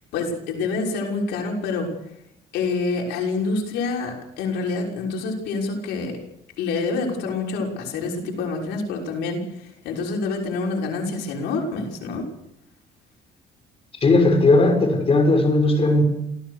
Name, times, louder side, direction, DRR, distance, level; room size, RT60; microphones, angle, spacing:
voice 1, 0.1-1.9 2.5-6.2 6.6-12.3, left 3 dB, 85° left, 0 dB, 6.2 m, -27 dB
voice 2, 14.0-16.0, left 2 dB, 35° left, 5 dB, 6.0 m, -17 dB
27.5 x 15.0 x 6.7 m, 0.82 s
cardioid pair, 110°, 17 cm